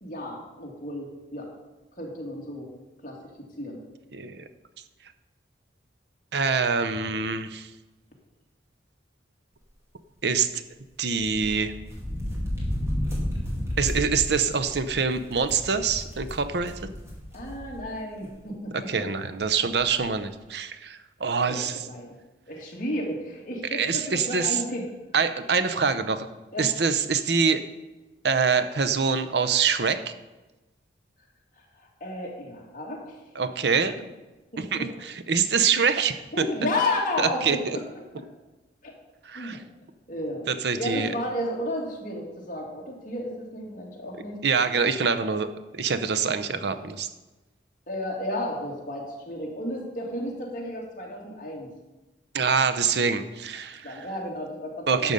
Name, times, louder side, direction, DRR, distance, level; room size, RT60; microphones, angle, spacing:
voice 1, 0.0-1.5 2.0-2.7 3.0-3.8 17.3-19.1 21.5-22.1 22.5-24.9 26.5-26.7 31.8-33.2 34.5-34.9 36.3-38.0 38.8-38.9 39.3-39.6 40.1-40.5 40.8-44.4 47.9-51.7 53.8-55.1, left 1 dB, 45° left, -3 dB, 2.5 m, -32 dB
voice 2, 4.1-4.4 6.3-7.7 10.2-10.6 11.0-11.7 13.8-16.9 18.9-21.8 23.7-24.6 25.1-26.3 26.6-27.6 28.2-30.1 33.4-34.0 34.6-36.2 37.2-37.6 39.2-39.6 40.5-41.1 44.4-47.1 52.3-53.9 54.9-55.1, right 5 dB, 65° right, 11 dB, 0.6 m, -25 dB
sound 1, 11.1-17.9 18.2-18.3 19.4-19.5 19.8-20.0, equal, 15° right, 2.3 m, -32 dB
11.5 x 7.0 x 5.3 m, 1.1 s
head